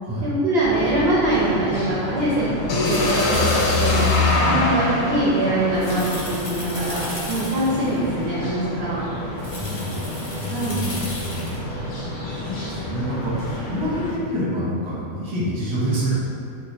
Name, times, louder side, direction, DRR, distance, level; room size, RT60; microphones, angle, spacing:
voice 1, 0.2-2.5 2.8-4.0 4.5-9.0 10.5-10.8, right 1 dB, 60° right, -7 dB, 0.7 m, -23 dB
sound 1, 0.6-14.1, left 1 dB, 70° left, 1.1 m, -31 dB
sound 2, 2.7-6.6, left 3 dB, 90° left, 1.0 m, -22 dB
sound 3, 2.8-4.4 5.7-8.1 9.4-11.6, left 1 dB, 40° left, 0.5 m, -36 dB
voice 2, 9.5-10.1 10.4-11.6 11.9-16.3, right 1 dB, 25° right, -8 dB, 0.8 m, -27 dB
3.2 x 2.1 x 4.2 m, 2.5 s
omnidirectional pair, 1.4 m